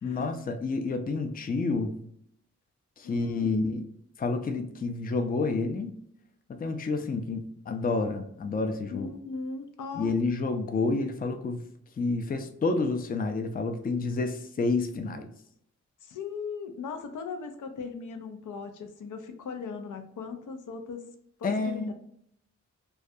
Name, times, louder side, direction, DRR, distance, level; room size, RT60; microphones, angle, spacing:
voice 1, 0.0-2.0 3.0-3.8 4.2-6.0 6.6-9.1 10.0-11.6 12.0-15.3 21.4-21.9, left 3 dB, 30° left, 5 dB, 0.4 m, -29 dB
voice 2, 3.0-3.7 8.9-10.1 16.0-21.0 21.4-21.9, left 5 dB, 85° left, 6 dB, 0.5 m, -38 dB
2.3 x 2.2 x 2.6 m, 0.70 s
cardioid pair, 60°, 30 cm